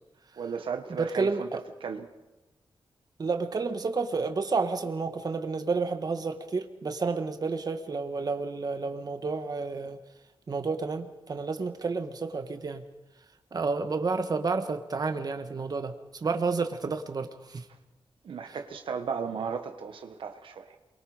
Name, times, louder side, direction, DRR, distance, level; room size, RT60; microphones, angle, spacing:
voice 1, 0.4-1.5 1.8-2.1 18.2-20.8, right 6 dB, 90° right, 6 dB, 1.4 m, -35 dB
voice 2, 0.9-1.6 3.2-10.0 10.5-12.8 13.5-17.7 18.4-18.6, right 4 dB, 50° right, 7 dB, 1.6 m, -30 dB
28.0 x 23.5 x 5.0 m, 1.0 s
wide cardioid pair, 90°, 9 cm